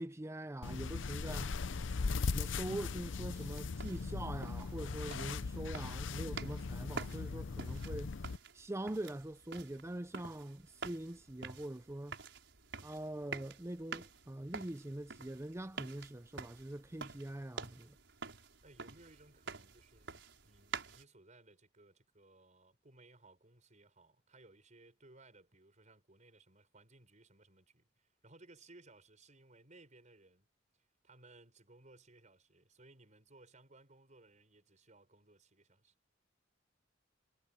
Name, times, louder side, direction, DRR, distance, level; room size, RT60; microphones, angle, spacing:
voice 1, 0.0-1.5 2.3-8.1 8.5-12.2 12.8-18.0, right 1 dB, 15° right, 0.6 m, -43 dB
sound 1, 0.6-8.4, left 4 dB, 80° left, 0.6 m, -39 dB
voice 2, 1.4-2.1 18.6-30.5 31.0-35.9, right 2 dB, 40° right, 5.8 m, -62 dB
sound 2, 3.3-21.0, right 4 dB, 75° right, 6.3 m, -49 dB
head